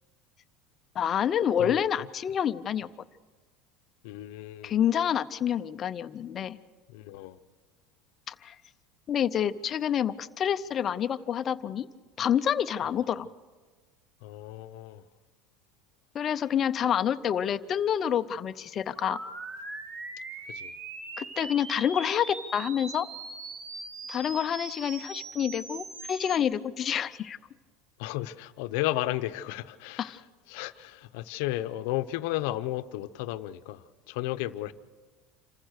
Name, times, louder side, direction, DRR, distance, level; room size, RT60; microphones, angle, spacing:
voice 1, 0.9-2.9 4.6-6.6 8.3-8.6 9.1-11.9 12.2-13.3 16.1-19.2 21.2-23.1 24.1-27.4 30.0-30.2, left 9 dB, 30° left, 0.6 m, -28 dB
voice 2, 1.6-2.1 4.0-4.8 6.9-7.4 14.2-15.0 20.5-20.7 28.0-30.2 30.5-34.7, left 16 dB, 70° left, 0.8 m, -33 dB
sound 1, 19.0-26.4, right 3 dB, 40° right, 1.9 m, -41 dB
27.0 x 15.0 x 6.5 m
cardioid pair, 160°, 0 cm